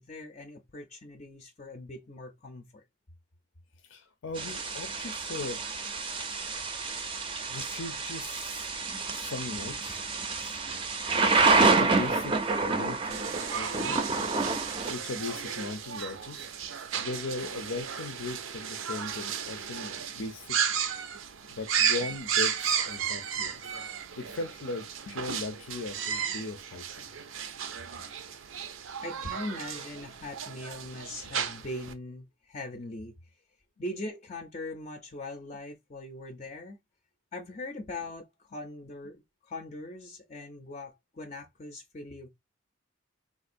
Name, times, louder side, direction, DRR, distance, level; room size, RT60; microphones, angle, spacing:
voice 1, 0.0-2.8 29.0-33.2 33.8-36.8 37.3-42.3, left 2 dB, 35° left, 0.5 m, -41 dB
voice 2, 3.9-5.7 6.2-6.3 7.5-8.8 9.1-10.0 10.4-10.6 11.3-13.3 13.5-14.3 14.9-20.6 20.9-21.1 21.5-23.8 24.1-27.1, left 3 dB, 85° left, 0.6 m, -39 dB
Thunder / Rain, 4.4-14.9, right 3 dB, 25° right, 0.5 m, -28 dB
sound 1, 13.1-31.9, right 8 dB, 85° right, 0.5 m, -34 dB
3.6 x 2.5 x 2.5 m
head